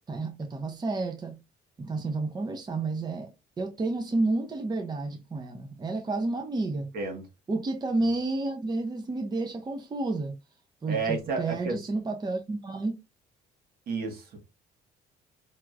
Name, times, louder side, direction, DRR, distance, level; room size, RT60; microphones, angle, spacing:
voice 1, 0.1-1.4 1.8-3.3 3.6-6.9 7.5-10.3 10.8-13.0, right 2 dB, 25° right, 0.7 m, -30 dB
voice 2, 10.9-11.8 13.9-14.4, right 4 dB, 65° right, 1.6 m, -31 dB
4.6 x 2.9 x 2.5 m
cardioid pair, 110°, 17 cm